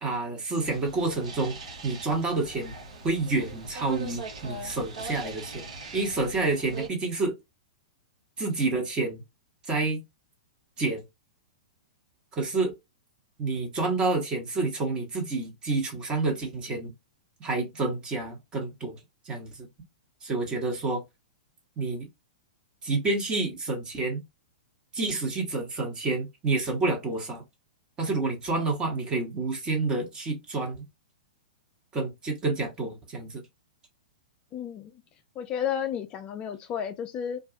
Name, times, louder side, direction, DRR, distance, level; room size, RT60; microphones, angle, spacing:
voice 1, 0.0-2.7 3.0-5.7 5.9-7.3 8.4-9.2 9.7-10.0 10.8-11.0 12.3-12.7 13.4-16.9 17.4-19.0 19.2-19.7 20.2-21.0 21.8-22.1 22.8-24.2 24.9-27.4 28.0-30.8 31.9-33.4, right 3 dB, 25° right, 1.0 m, -29 dB
sound 1, 0.6-6.9, right 3 dB, 65° right, 0.9 m, -41 dB
voice 2, 34.5-34.9 35.4-37.4, left 8 dB, 30° left, 0.3 m, -32 dB
2.4 x 2.2 x 2.5 m
hypercardioid pair, 110°, 4 cm